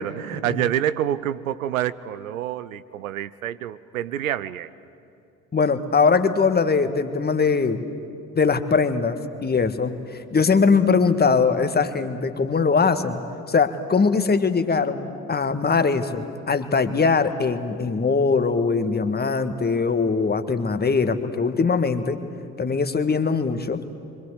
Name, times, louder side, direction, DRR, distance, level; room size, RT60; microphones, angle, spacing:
voice 1, 0.0-4.7, right 11 dB, 75° right, 15 dB, 0.7 m, -27 dB
voice 2, 5.5-7.9 8.3-13.2 13.5-22.2 22.6-23.8, left 5 dB, 25° left, 9 dB, 1.6 m, -21 dB
28.5 x 24.5 x 8.2 m, 2.6 s
figure-of-eight pair, 50°, 41 cm